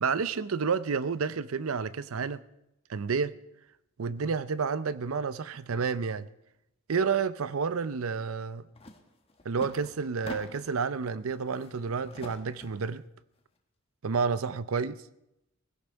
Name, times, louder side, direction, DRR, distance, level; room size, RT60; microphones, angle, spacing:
voice 1, 0.0-2.4 2.9-3.4 4.0-6.3 6.9-8.7 9.4-13.0 14.0-15.0, right 5 dB, 90° right, 0.6 m, -30 dB
sound 1, 8.7-9.0 9.3-10.8 11.3-12.9, left 2 dB, 30° left, 1.3 m, -44 dB
18.0 x 16.0 x 4.5 m
head